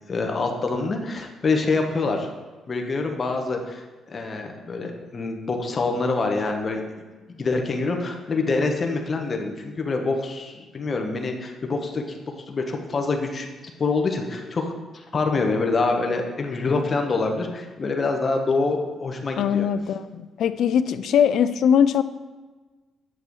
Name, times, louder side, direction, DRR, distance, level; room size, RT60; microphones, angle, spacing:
voice 1, 0.1-2.3 2.7-6.8 7.4-13.5 13.8-19.7, left 3 dB, 40° left, 3 dB, 1.1 m, -26 dB
voice 2, 19.4-22.0, left 8 dB, 75° left, 13 dB, 0.4 m, -21 dB
9.3 x 6.9 x 3.1 m, 1.3 s
cardioid pair, 90°, 0 cm